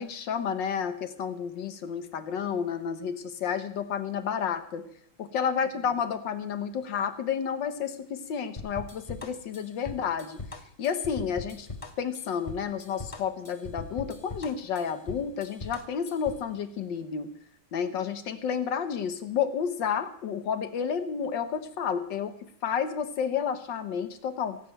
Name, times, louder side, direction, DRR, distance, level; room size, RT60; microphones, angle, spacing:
voice 1, 0.0-4.8 5.3-10.4 10.8-11.7 12.0-17.3 17.7-22.3 22.6-24.6, left 7 dB, 65° left, 9 dB, 1.6 m, -31 dB
sound 1, 8.6-16.5, left 3 dB, 25° left, 0.8 m, -41 dB
17.0 x 7.6 x 9.0 m, 0.65 s
omnidirectional pair, 2.2 m